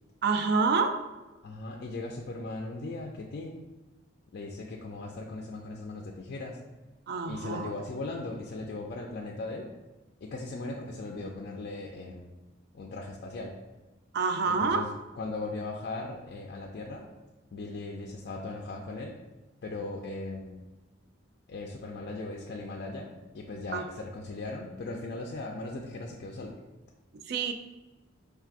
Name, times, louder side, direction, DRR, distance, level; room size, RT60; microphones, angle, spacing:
voice 1, 0.2-1.0 7.1-7.7 14.1-14.8 23.7-23.8 27.3-27.5, right 4 dB, 55° right, 6 dB, 0.3 m, -27 dB
voice 2, 1.4-3.6 4.3-6.6 7.3-9.7 10.2-12.3 12.7-13.6 14.5-14.9 15.2-17.1 17.5-19.2 19.6-20.6 21.5-26.5, left 2 dB, 55° left, 0 dB, 0.4 m, -38 dB
4.5 x 3.3 x 2.4 m, 1.1 s
head